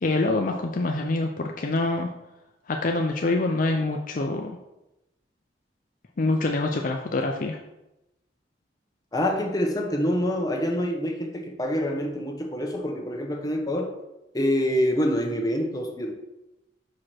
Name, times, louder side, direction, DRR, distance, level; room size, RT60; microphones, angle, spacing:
voice 1, 0.0-2.1 2.7-4.6 6.2-7.6, left 2 dB, 50° left, 3 dB, 0.5 m, -25 dB
voice 2, 9.1-13.9 14.3-16.1, equal, 20° left, 1 dB, 0.9 m, -26 dB
6.1 x 4.8 x 4.3 m, 0.92 s
head